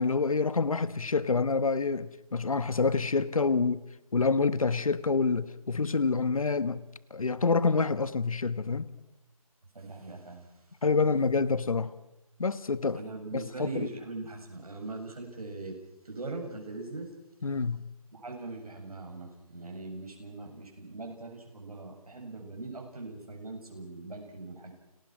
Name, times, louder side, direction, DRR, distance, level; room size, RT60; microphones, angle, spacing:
voice 1, 0.0-3.8 4.1-6.8 7.1-8.9 10.8-11.9 12.4-13.0 13.3-13.9 17.4-17.8, left 4 dB, 65° left, 1.4 m, -27 dB
voice 2, 9.7-10.5 12.9-15.8 16.0-17.1 18.1-24.7, right 3 dB, 75° right, 7.8 m, -41 dB
29.5 x 19.0 x 6.2 m
figure-of-eight pair, 175°, 19 cm